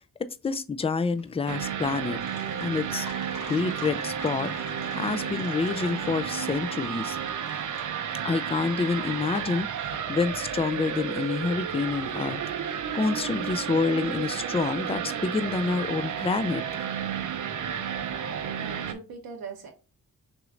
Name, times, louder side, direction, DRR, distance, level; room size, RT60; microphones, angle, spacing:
voice 1, 0.4-2.2 2.6-3.1 3.5-7.2 8.2-16.9, left 4 dB, 20° left, 0.3 m, -28 dB
sound 1, 1.2-10.8, left 4 dB, 60° left, 1.6 m, -47 dB
sound 2, 1.5-18.9, right 8 dB, 60° right, 0.6 m, -32 dB
voice 2, 18.6-19.7, right 5 dB, 80° right, 1.0 m, -40 dB
6.1 x 3.1 x 2.5 m
cardioid pair, 100°, 36 cm